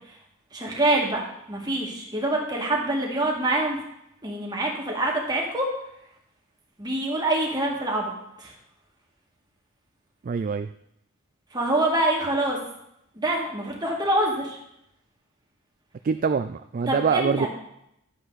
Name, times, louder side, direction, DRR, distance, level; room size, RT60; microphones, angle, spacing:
voice 1, 0.5-1.2 1.5-3.8 4.2-5.7 6.8-8.1 8.4-8.5 11.5-12.6 13.2-14.6 16.9-17.5, right 1 dB, 20° right, -2 dB, 2.1 m, -25 dB
voice 2, 10.2-10.7 16.0-17.5, right 5 dB, 40° right, 10 dB, 0.3 m, -24 dB
11.5 x 7.8 x 4.1 m, 0.78 s
head